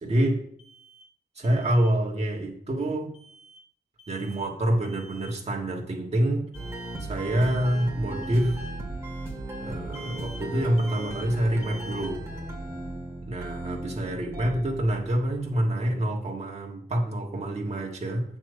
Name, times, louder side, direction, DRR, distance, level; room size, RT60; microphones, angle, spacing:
voice 1, 0.0-0.4 1.3-3.1 4.1-6.5 7.0-8.6 9.6-12.2 13.3-18.2, right 1 dB, 40° right, -2 dB, 1.6 m, -26 dB
Alarm, 0.6-1.0 1.4-1.9 3.1-3.6 4.0-4.5 4.8-5.3 6.5-7.0 7.4-7.9 8.2-8.7 9.9-10.4 10.8-11.3 11.6-12.1, equal, 30° left, 2.1 m, -48 dB
sound 1, 6.5-15.7, right 1 dB, 15° right, 1.9 m, -37 dB
8.1 x 6.0 x 5.1 m, 0.62 s
wide cardioid pair, 155°, 17 cm